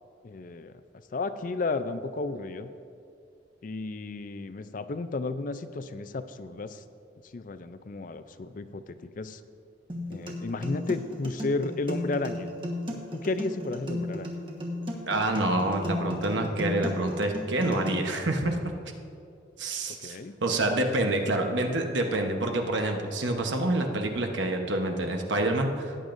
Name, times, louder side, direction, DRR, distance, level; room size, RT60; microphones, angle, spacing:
voice 1, 0.2-0.7 1.1-2.7 3.6-6.8 7.3-9.4 10.1-12.5 12.9-14.3 19.9-20.4, left 3 dB, 45° left, 11 dB, 0.4 m, -33 dB
sound 1, 9.9-17.9, left 1 dB, 25° right, 1.3 m, -34 dB
voice 2, 15.1-18.6 19.6-26.0, right 2 dB, 80° right, 3 dB, 1.0 m, -27 dB
17.5 x 8.8 x 2.6 m, 2.5 s
head